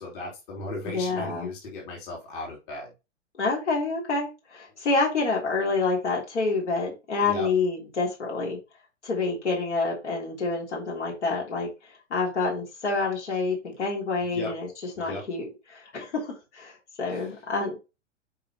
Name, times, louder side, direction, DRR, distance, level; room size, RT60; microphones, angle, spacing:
voice 1, 0.0-2.9 7.2-7.5 14.2-14.5 15.0-15.2 17.1-17.2, left 2 dB, 45° left, -2 dB, 3.6 m, -36 dB
voice 2, 0.9-1.5 3.4-8.6 9.0-11.7 12.1-14.7 15.0-17.8, left 3 dB, 65° left, -2 dB, 3.5 m, -28 dB
7.3 x 5.6 x 3.0 m, 0.27 s
figure-of-eight pair, 105°, 37 cm